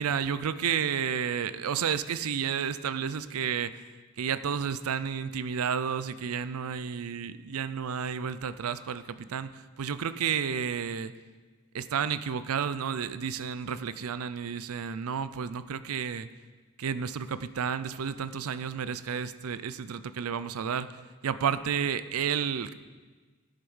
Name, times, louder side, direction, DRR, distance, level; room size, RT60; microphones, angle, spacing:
voice 1, 0.0-3.8 4.2-11.1 11.7-16.3 16.8-22.7, right 7 dB, 80° right, 14 dB, 0.5 m, -31 dB
10.0 x 7.8 x 5.5 m, 1.4 s
head